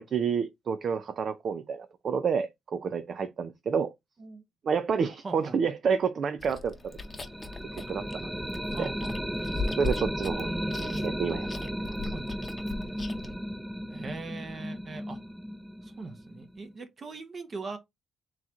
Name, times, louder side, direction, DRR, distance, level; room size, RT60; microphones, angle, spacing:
voice 1, 0.0-3.9 4.6-7.0 7.9-8.3 8.8-8.9 9.8-10.5 11.0-11.5 12.0-12.1, right 6 dB, 55° right, 0.5 m, -29 dB
voice 2, 5.2-5.6 8.6-9.1 10.4-11.2 12.1-12.3 13.9-15.2 15.8-17.8, right 3 dB, 40° right, 1.0 m, -40 dB
Chewing mastication, 6.4-13.3, left 3 dB, 20° left, 0.8 m, -39 dB
sound 1, 7.0-16.7, equal, 5° right, 0.5 m, -35 dB
3.9 x 3.0 x 3.6 m
cardioid pair, 90°, 0 cm